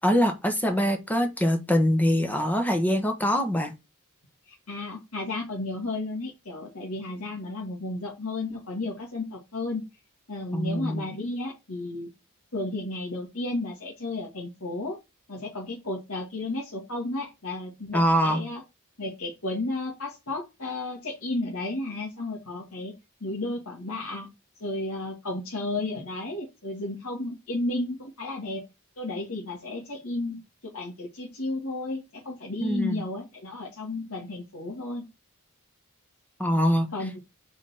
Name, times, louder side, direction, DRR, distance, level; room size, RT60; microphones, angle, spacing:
voice 1, 0.0-3.7 10.5-11.1 17.9-18.5 32.6-33.0 36.4-36.9, equal, 10° left, 1.3 m, -24 dB
voice 2, 4.4-9.8 10.3-12.1 12.5-15.0 15.3-18.6 19.0-22.9 23.2-24.3 24.6-28.6 29.0-35.1 36.9-37.2, left 2 dB, 70° left, 2.3 m, -33 dB
5.0 x 5.0 x 5.8 m
head